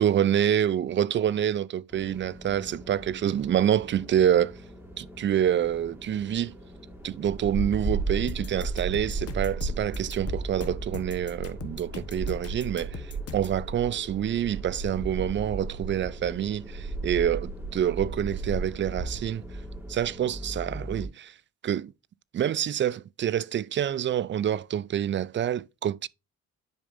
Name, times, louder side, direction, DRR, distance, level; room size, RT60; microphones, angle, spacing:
voice 1, 0.0-4.6 5.0-6.6 7.0-19.4 19.9-21.3 21.6-21.9 22.3-26.1, right 10 dB, 40° right, 0.4 m, -27 dB
sound 1, 1.9-21.1, right 2 dB, 10° right, 3.0 m, -36 dB
sound 2, 8.3-13.6, left 6 dB, 50° left, 1.3 m, -41 dB
10.5 x 5.1 x 2.6 m
cardioid pair, 90°, 30 cm